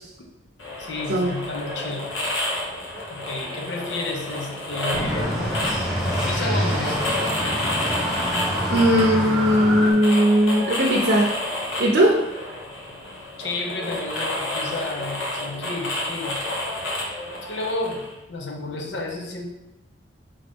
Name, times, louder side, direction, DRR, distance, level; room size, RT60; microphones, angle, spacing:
sound 1, 0.6-18.1, left 1 dB, 80° left, 1.2 m, -30 dB
voice 1, 0.8-2.1 3.1-5.7 6.3-7.1 13.4-16.4 17.4-18.0 18.3-19.4, left 2 dB, 65° left, 1 dB, 0.6 m, -31 dB
sound 2, 4.9-9.9, equal, ahead, 0.7 m, -26 dB
voice 2, 8.7-11.3 11.8-12.2, equal, 60° right, -2 dB, 0.6 m, -18 dB
3.9 x 3.8 x 3.5 m, 0.95 s
head